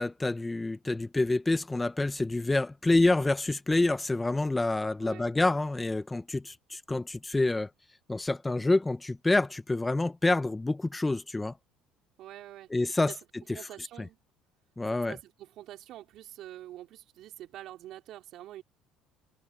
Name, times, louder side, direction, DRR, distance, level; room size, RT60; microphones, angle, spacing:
voice 1, 0.0-7.7 8.1-11.5 12.7-13.1 14.8-15.1, left 2 dB, 15° left, 1.0 m, -27 dB
voice 2, 12.2-12.8 13.1-13.2 13.5-14.2 15.1-18.6, right 13 dB, 65° right, 4.8 m, -46 dB
supercardioid pair, 95°, 0 cm